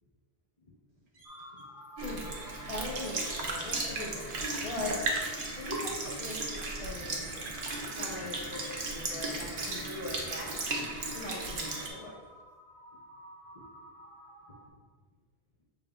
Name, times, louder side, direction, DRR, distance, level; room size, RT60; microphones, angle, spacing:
sound 1, 0.9-12.2, right 3 dB, 85° right, 1.1 m, -53 dB
sound 2, 1.2-14.7, equal, 20° right, 0.9 m, -51 dB
Sink (filling or washing) / Liquid, 2.0-11.9, right 2 dB, 60° right, 0.8 m, -35 dB
voice 1, 2.7-4.4 4.6-5.0 5.3-7.5 7.8-10.6 11.1-12.2, left 2 dB, 40° left, -6 dB, 0.6 m, -41 dB
6.0 x 3.5 x 2.3 m, 1.4 s
omnidirectional pair, 1.1 m